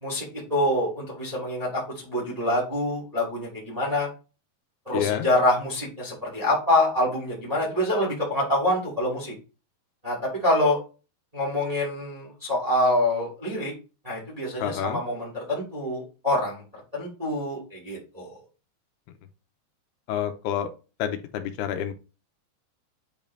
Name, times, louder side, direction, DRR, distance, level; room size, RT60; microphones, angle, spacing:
voice 1, 0.0-4.1 4.8-9.3 10.0-10.8 11.3-13.7 14.0-16.6 16.9-18.4, left 1 dB, 15° right, -3 dB, 1.5 m, -26 dB
voice 2, 4.9-5.2 14.6-15.0 20.1-20.7 21.0-21.9, left 10 dB, 85° left, 8 dB, 2.8 m, -28 dB
8.0 x 5.3 x 2.7 m, 0.33 s
omnidirectional pair, 4.5 m